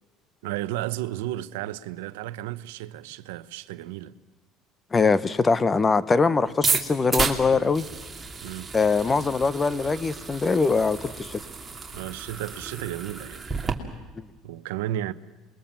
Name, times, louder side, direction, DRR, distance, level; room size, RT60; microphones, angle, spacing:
voice 1, 0.4-4.1 8.4-8.7 11.9-13.5 13.9-14.0 14.4-15.1, right 14 dB, 85° right, 0.8 m, -33 dB
voice 2, 4.9-7.8 8.7-11.4 14.2-14.3, left 4 dB, 25° left, 1.1 m, -22 dB
sound 1, 6.5-13.7, right 4 dB, 20° right, 2.8 m, -32 dB
27.5 x 22.0 x 7.5 m
supercardioid pair, 95°, 0 cm